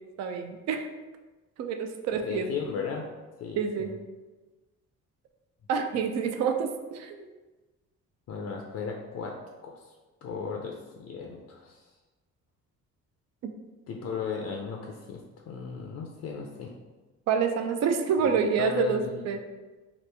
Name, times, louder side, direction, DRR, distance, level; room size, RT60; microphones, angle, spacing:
voice 1, 0.2-0.9 1.6-2.5 3.6-3.9 5.7-7.3 13.4-13.5 17.3-19.0 19.3-19.4, right 6 dB, 60° right, 6 dB, 0.4 m, -27 dB
voice 2, 2.2-3.1 3.4-3.9 8.3-9.3 9.6-9.9 10.2-11.9 13.9-16.7 18.2-19.4, left 6 dB, 55° left, 1 dB, 0.4 m, -36 dB
3.0 x 2.4 x 3.3 m, 1.2 s
cardioid pair, 90°, 30 cm